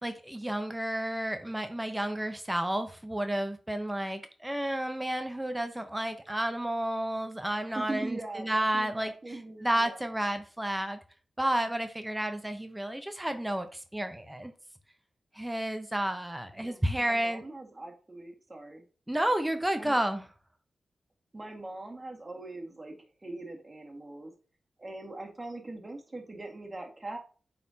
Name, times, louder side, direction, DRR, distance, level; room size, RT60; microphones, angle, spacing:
voice 1, 0.0-11.0 11.4-14.5 15.3-17.4 19.1-20.2, right 1 dB, 10° right, 0.8 m, -31 dB
voice 2, 7.7-10.1 16.5-18.8 19.8-20.0 21.3-24.3 24.8-27.2, right 2 dB, 30° right, 1.9 m, -41 dB
8.9 x 4.2 x 2.8 m
cardioid pair, 65°, 0 cm